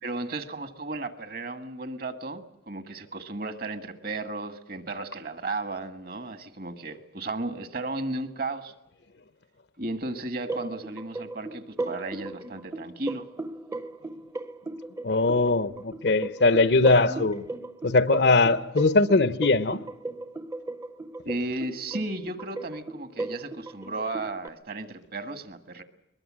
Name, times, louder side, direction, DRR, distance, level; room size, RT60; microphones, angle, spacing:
voice 1, 0.0-8.7 9.8-13.2 16.9-17.3 21.2-25.8, right 2 dB, 50° right, 1.6 m, -34 dB
sound 1, 10.5-24.5, right 2 dB, 15° right, 0.7 m, -37 dB
voice 2, 15.0-17.4 17.8-19.8, left 3 dB, 60° left, 0.8 m, -21 dB
22.0 x 21.0 x 7.5 m
head